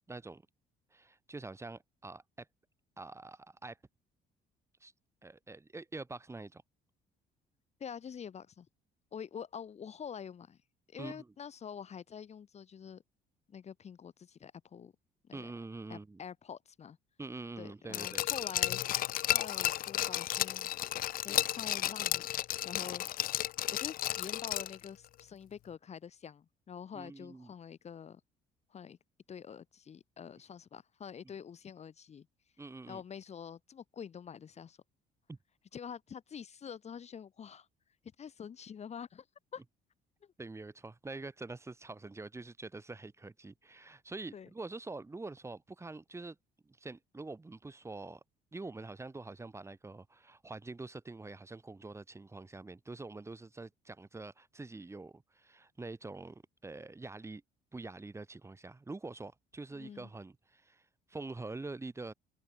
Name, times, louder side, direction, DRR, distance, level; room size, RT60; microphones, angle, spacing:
voice 1, 0.1-0.4 0.9-2.4 3.0-3.8 4.8-4.9 5.2-6.6 11.0-11.3 15.3-16.2 17.2-18.2 26.9-27.5 32.6-33.0 35.3-35.4 40.4-46.4 46.6-48.2 48.5-57.4 57.7-60.8 61.1-62.1, right 3 dB, 15° right, 3.2 m, -45 dB
voice 2, 7.8-8.7 9.1-10.6 10.9-13.0 13.5-14.9 15.3-15.5 15.9-17.0 17.6-21.0 21.2-23.3 23.7-28.2 28.7-29.0 29.3-32.3 32.9-34.8 35.7-37.7 38.2-39.3 39.5-39.6 40.2-40.3 44.3-44.5 59.7-60.1, left 7 dB, 40° left, 2.1 m, -46 dB
Glass, 17.9-24.9 25.2-25.3, left 13 dB, 60° left, 0.6 m, -33 dB
open air
cardioid pair, 110°, 17 cm